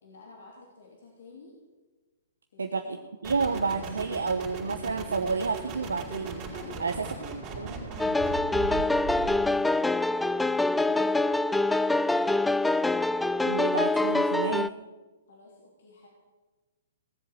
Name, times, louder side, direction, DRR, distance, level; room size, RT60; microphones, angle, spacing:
voice 1, 0.0-1.6 2.5-3.1 6.5-10.3 10.8-12.6 15.3-16.1, left 3 dB, 70° left, -1 dB, 3.2 m, -51 dB
voice 2, 2.6-3.0 3.2-6.4 6.8-6.9 7.6-7.7 13.4-14.7, right 4 dB, 85° right, 7 dB, 0.9 m, -30 dB
sound 1, 3.2-9.6, right 4 dB, 30° right, 4.5 m, -38 dB
sound 2, 8.0-14.7, left 2 dB, 5° left, 0.4 m, -25 dB
18.0 x 7.7 x 8.3 m, 1.3 s
hypercardioid pair, 125°, 0 cm